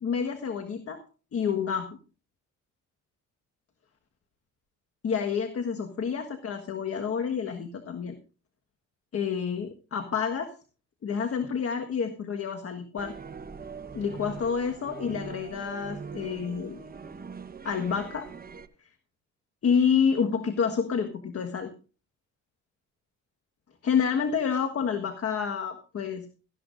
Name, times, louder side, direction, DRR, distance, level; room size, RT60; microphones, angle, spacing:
voice 1, 0.0-1.0 1.3-1.9 5.0-8.2 9.1-10.5 11.0-13.1 13.9-16.9 17.6-18.3 19.6-21.7 23.8-26.3, left 6 dB, 50° left, 5 dB, 1.5 m, -28 dB
sound 1, 13.0-18.7, right 5 dB, 30° right, 1.1 m, -42 dB
17.5 x 13.5 x 2.6 m, 0.36 s
cardioid pair, 90°, 30 cm